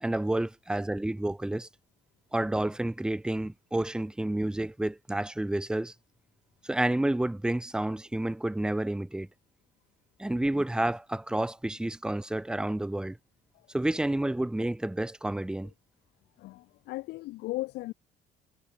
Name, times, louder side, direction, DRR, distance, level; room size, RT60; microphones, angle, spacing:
voice 1, 0.0-1.7 2.3-5.9 6.6-9.3 10.2-13.2 13.7-15.7, right 1 dB, 5° right, 0.5 m, -30 dB
voice 2, 16.4-17.9, left 19 dB, 80° left, 0.5 m, -37 dB
cardioid pair, 110°, 17 cm